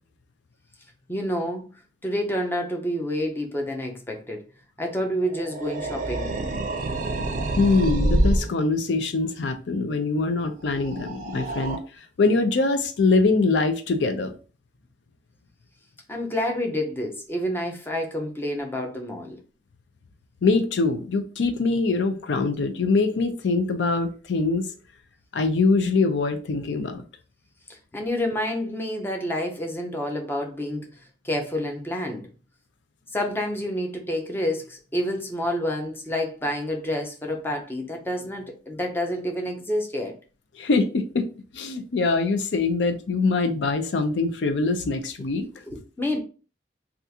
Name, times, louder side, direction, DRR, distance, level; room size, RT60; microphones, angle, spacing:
voice 1, 1.1-1.7 2.0-4.4 4.8-6.3 16.1-19.4 27.7-30.9 31.2-32.3 33.1-40.1 45.7-46.2, left 1 dB, 10° left, 0.6 m, -28 dB
sound 1, 5.2-8.5 10.6-11.8, right 1 dB, 45° right, 0.5 m, -27 dB
voice 2, 7.6-11.8 12.2-14.3 20.4-24.7 25.3-27.0 40.6-41.3 41.5-45.5, left 3 dB, 80° left, 0.5 m, -23 dB
3.5 x 2.4 x 2.7 m
head